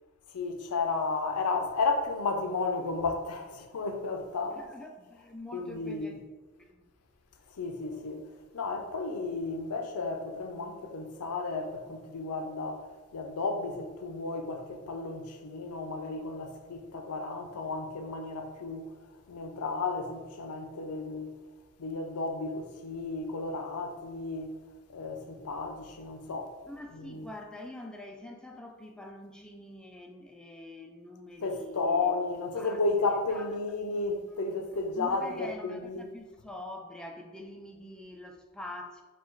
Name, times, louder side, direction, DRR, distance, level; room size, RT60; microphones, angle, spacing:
voice 1, 0.3-4.6 5.5-6.2 7.5-8.2 8.5-18.9 19.3-21.4 21.8-24.6 24.9-26.6 26.9-27.2 31.4-36.1, left 3 dB, 90° left, 0.5 m, -33 dB
voice 2, 4.5-6.2 6.6-6.9 26.7-32.1 32.6-32.8 33.3-33.5 34.9-39.0, left 1 dB, 5° left, 0.3 m, -45 dB
4.4 x 2.3 x 4.5 m
head